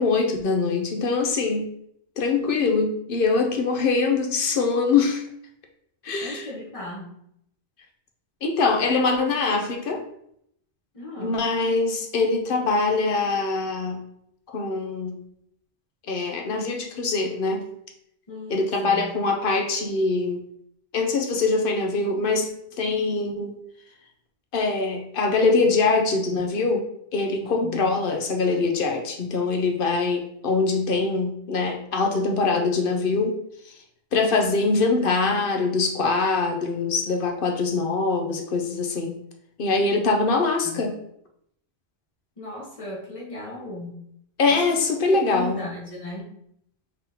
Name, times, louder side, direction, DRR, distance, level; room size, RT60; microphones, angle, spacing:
voice 1, 0.0-1.7 2.2-5.2 6.0-6.4 8.4-10.0 11.2-14.0 14.5-15.2 16.1-17.6 18.5-20.4 20.9-23.6 24.5-26.9 27.1-33.4 33.6-33.7 34.1-39.1 39.6-40.9 44.4-45.6, left 3 dB, 60° left, 3 dB, 0.8 m, -23 dB
voice 2, 6.2-7.2 10.9-11.3 18.3-19.1 27.4-27.9 40.6-40.9 42.4-44.0 44.5-44.6 45.1-46.3, left 1 dB, 35° left, -3 dB, 1.0 m, -36 dB
3.8 x 3.6 x 2.8 m, 0.71 s
omnidirectional pair, 1.1 m